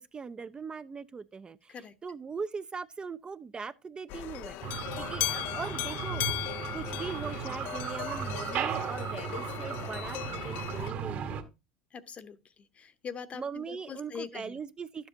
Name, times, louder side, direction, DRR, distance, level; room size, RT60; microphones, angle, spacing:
voice 1, 0.0-6.2 6.7-11.5 13.3-15.1, right 5 dB, 25° right, 0.4 m, -40 dB
sound 1, 4.1-10.9, left 15 dB, 60° left, 0.4 m, -37 dB
sound 2, 4.6-11.4, right 7 dB, 50° right, 1.2 m, -36 dB
voice 2, 11.9-12.4 12.8-14.6, left 6 dB, 35° left, 0.8 m, -42 dB
12.0 x 7.4 x 2.7 m
hypercardioid pair, 80°, 4 cm